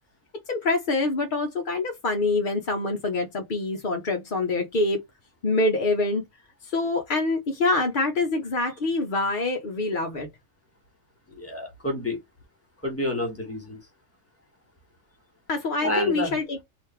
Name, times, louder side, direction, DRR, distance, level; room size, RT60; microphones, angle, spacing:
voice 1, 0.5-5.0 5.4-6.2 6.6-10.3 15.5-16.6, left 2 dB, 45° left, 0.7 m, -25 dB
voice 2, 11.3-12.2 12.8-13.8 15.8-16.3, left 1 dB, 10° left, 1.5 m, -29 dB
3.4 x 2.7 x 4.4 m
omnidirectional pair, 1.5 m